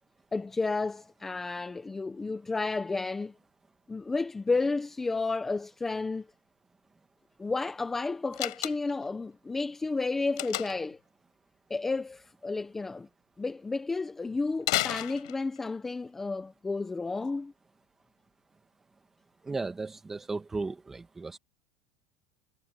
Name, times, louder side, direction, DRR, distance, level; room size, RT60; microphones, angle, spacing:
voice 1, 0.3-3.3 3.9-6.2 7.4-11.0 11.7-13.1 13.4-17.5, left 3 dB, 10° left, 0.9 m, -32 dB
Slam, 8.3-9.1 10.4-10.9 14.6-15.7, left 20 dB, 85° left, 4.7 m, -32 dB
voice 2, 19.4-21.4, right 3 dB, 10° right, 1.8 m, -35 dB
supercardioid pair, 155°, 3 cm